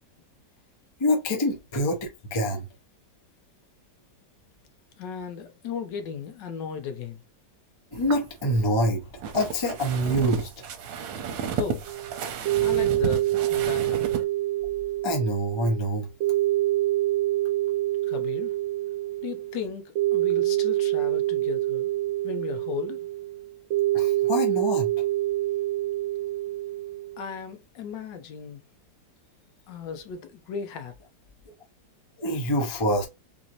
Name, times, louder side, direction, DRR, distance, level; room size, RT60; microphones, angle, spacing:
voice 1, 1.0-2.0 2.3-2.6 7.9-9.0 9.3-10.5 15.0-16.1 23.9-24.9 32.2-33.1, equal, 30° left, 0.5 m, -25 dB
voice 2, 5.0-7.2 11.5-11.9 12.6-14.1 18.0-18.6 19.2-21.9 22.2-23.1 27.2-28.6 29.7-31.0, left 7 dB, 75° left, 1.3 m, -36 dB
sound 1, 7.9-14.2, right 7 dB, 80° right, 1.4 m, -33 dB
sound 2, 11.9-27.3, right 15 dB, 55° right, 1.2 m, -26 dB
4.0 x 2.6 x 2.9 m
omnidirectional pair, 2.0 m